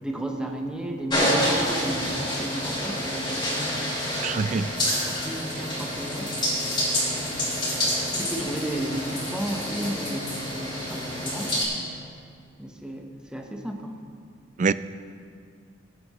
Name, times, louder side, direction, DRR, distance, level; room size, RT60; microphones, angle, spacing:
voice 1, 0.0-4.5 5.0-6.4 7.2-7.6 8.2-11.6 12.6-14.0, right 1 dB, 5° right, 1.0 m, -34 dB
sound 1, 1.1-11.6, equal, 25° left, 3.2 m, -28 dB
voice 2, 4.2-4.7 14.6-14.7, right 5 dB, 40° right, 0.3 m, -24 dB
22.0 x 9.3 x 3.1 m
head